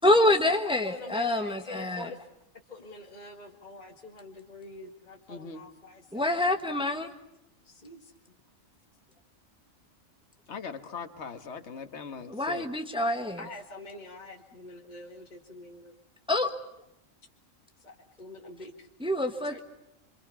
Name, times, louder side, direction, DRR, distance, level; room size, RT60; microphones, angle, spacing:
voice 1, 0.0-2.1 6.1-7.1 12.3-13.4 16.3-16.5 19.0-19.6, left 1 dB, 5° right, 5 dB, 1.6 m, -26 dB
voice 2, 0.8-2.2 2.7-6.5 7.6-8.4 13.4-15.9 17.8-18.9 19.4-19.6, left 2 dB, 35° left, 0 dB, 2.1 m, -46 dB
voice 3, 5.3-5.6 10.5-12.7, left 5 dB, 55° left, 7 dB, 1.8 m, -40 dB
28.0 x 26.0 x 7.1 m, 0.85 s
omnidirectional pair, 1.4 m